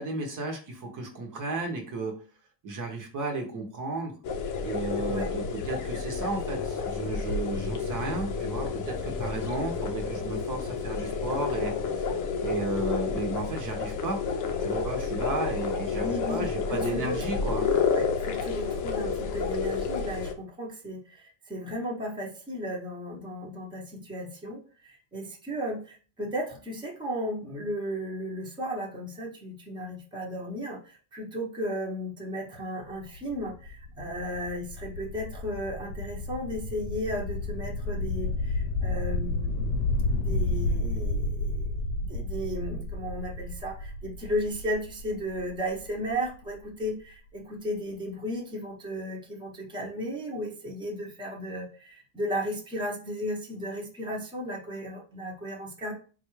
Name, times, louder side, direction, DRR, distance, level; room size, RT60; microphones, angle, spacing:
voice 1, 0.0-2.1 2.6-4.1 4.6-14.2 14.6-17.6, right 3 dB, 40° right, 2 dB, 0.8 m, -34 dB
sound 1, 4.2-20.3, left 5 dB, 40° left, 0.6 m, -30 dB
voice 2, 16.0-41.8 42.1-55.9, equal, 10° right, -2 dB, 0.8 m, -35 dB
sound 2, 32.8-46.6, left 2 dB, 85° left, 0.6 m, -31 dB
3.8 x 2.4 x 3.0 m, 0.39 s
cardioid pair, 125°, 50 cm